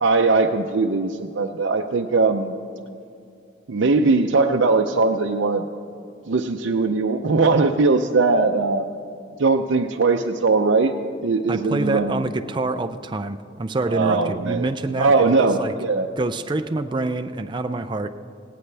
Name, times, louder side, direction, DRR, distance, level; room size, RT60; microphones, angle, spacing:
voice 1, 0.0-2.5 3.7-5.6 6.3-8.9 9.4-10.9 11.2-12.2 13.9-14.7 15.0-16.1, right 3 dB, 70° right, 2 dB, 0.6 m, -20 dB
voice 2, 11.5-15.7 16.2-18.1, right 2 dB, 25° right, 8 dB, 0.4 m, -26 dB
18.0 x 17.5 x 3.4 m, 2.6 s
head